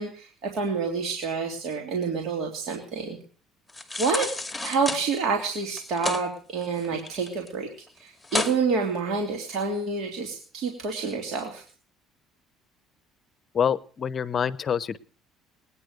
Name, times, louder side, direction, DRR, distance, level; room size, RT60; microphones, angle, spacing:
voice 1, 0.0-3.2 4.0-4.3 4.6-7.7 8.0-11.6, right 4 dB, 60° right, 1 dB, 3.1 m, -28 dB
sound 1, 3.7-5.0 5.7-6.2 6.6-7.5 7.8-7.9 8.2-8.6 9.1-9.2, left 2 dB, 10° left, 2.3 m, -30 dB
voice 2, 13.5-15.0, left 7 dB, 40° left, 19 dB, 0.8 m, -26 dB
20.5 x 9.8 x 6.5 m, 0.43 s
supercardioid pair, 90°, 0 cm